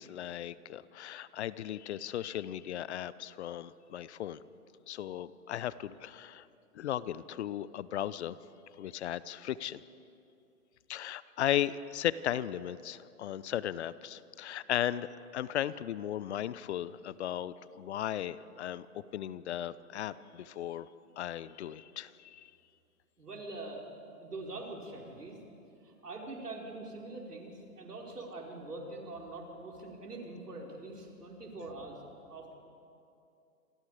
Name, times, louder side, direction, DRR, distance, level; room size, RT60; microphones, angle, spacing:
voice 1, 0.0-4.4 4.9-6.5 6.7-8.4 8.8-9.8 10.9-15.1 15.3-18.9 19.1-20.9 21.2-22.5, left 11 dB, 45° left, 18 dB, 0.8 m, -36 dB
voice 2, 23.2-23.8 24.2-25.4 25.8-32.0 32.3-32.5, right 2 dB, 90° right, 0 dB, 5.0 m, -43 dB
28.5 x 24.0 x 5.0 m, 2.6 s
hypercardioid pair, 130°, 45 cm